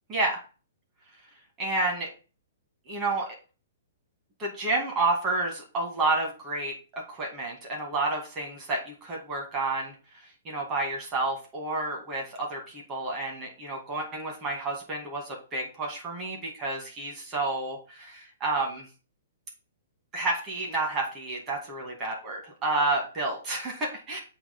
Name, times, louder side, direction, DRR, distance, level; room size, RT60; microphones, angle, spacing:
voice 1, 0.1-0.4 1.6-2.1 2.9-3.3 4.4-9.9 10.4-18.9 20.1-24.2, right 2 dB, 20° right, -1 dB, 2.1 m, -30 dB
7.9 x 3.1 x 6.1 m, 0.35 s
hypercardioid pair, 165°, 0 cm